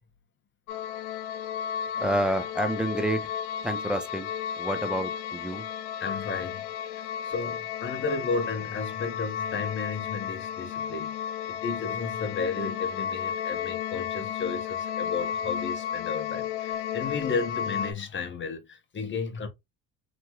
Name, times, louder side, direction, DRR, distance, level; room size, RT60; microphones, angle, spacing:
sound 1, 0.7-17.9, left 9 dB, 65° left, 0.6 m, -33 dB
voice 1, 2.0-3.2 3.6-4.3 4.6-5.6, right 1 dB, ahead, 0.3 m, -28 dB
voice 2, 6.0-6.6 7.2-11.1 11.5-19.5, left 4 dB, 25° left, 0.8 m, -33 dB
3.0 x 2.9 x 2.2 m
supercardioid pair, 85°, 48 cm